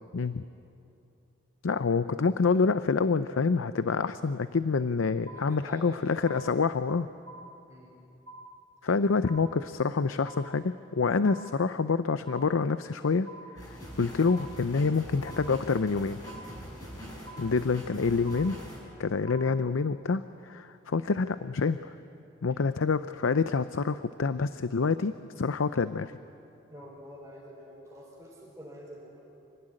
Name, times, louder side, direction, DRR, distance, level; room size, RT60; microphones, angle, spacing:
voice 1, 1.6-7.1 8.8-13.3 13.6-16.2 17.4-18.6 19.0-21.9 22.4-26.1, left 4 dB, 85° left, 12 dB, 0.6 m, -27 dB
voice 2, 5.3-6.3 7.7-7.9 26.7-29.1, equal, 15° right, -9 dB, 5.3 m, -47 dB
sound 1, 5.3-5.9 6.3-6.9 7.3-7.9 8.3-8.9 9.3-9.9 10.3-10.9 11.3-11.9 12.3-12.9 13.3-13.9 14.3-14.9 15.3-15.9 16.3-16.9 17.3-17.9 18.3-18.9 19.3-19.9, right 1 dB, 70° right, 1.5 m, -49 dB
sound 2, 13.6-18.8, equal, 20° left, 6.7 m, -43 dB
27.0 x 18.5 x 10.0 m, 2.7 s
head